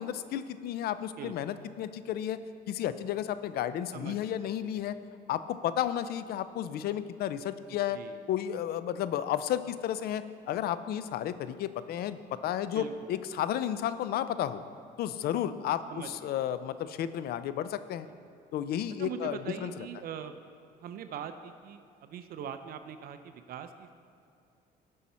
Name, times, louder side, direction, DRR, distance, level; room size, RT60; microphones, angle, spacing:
voice 1, 0.0-2.4 2.7-4.9 5.3-8.0 8.3-14.6 15.0-18.1 18.5-19.9, left 10 dB, 65° left, 13 dB, 0.5 m, -32 dB
voice 2, 3.9-4.4 7.7-8.2 12.7-12.9 15.9-16.4 19.0-20.4 20.8-23.9, right 8 dB, 60° right, 9 dB, 0.5 m, -42 dB
16.0 x 5.5 x 4.2 m, 2.5 s
cardioid pair, 110°, 17 cm